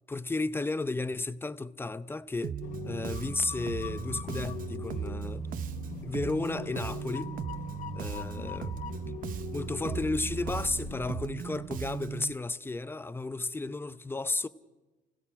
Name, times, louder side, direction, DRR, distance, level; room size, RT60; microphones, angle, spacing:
voice 1, 0.1-2.6 2.8-5.5 6.0-7.3 7.9-8.8 9.5-14.5, left 3 dB, 15° left, 0.6 m, -33 dB
Bass guitar, 2.4-12.3, right 8 dB, 55° right, 0.8 m, -38 dB
sound 1, 2.6-11.2, left 9 dB, 50° left, 0.8 m, -42 dB
sound 2, 4.8-12.2, right 7 dB, 70° right, 2.9 m, -56 dB
29.5 x 16.5 x 6.0 m
cardioid pair, 110°, 17 cm